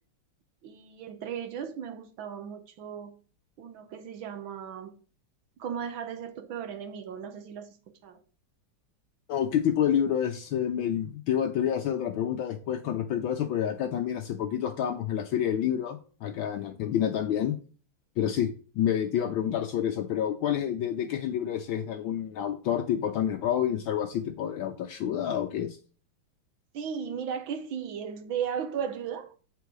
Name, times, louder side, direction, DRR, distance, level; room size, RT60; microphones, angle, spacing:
voice 1, 0.6-3.2 3.6-5.0 5.6-7.8 8.0-8.2 26.7-29.4, right 7 dB, 70° right, 1.6 m, -36 dB
voice 2, 9.3-17.5 18.2-25.8, left 9 dB, 70° left, 1.4 m, -28 dB
7.7 x 4.7 x 4.7 m
omnidirectional pair, 2.4 m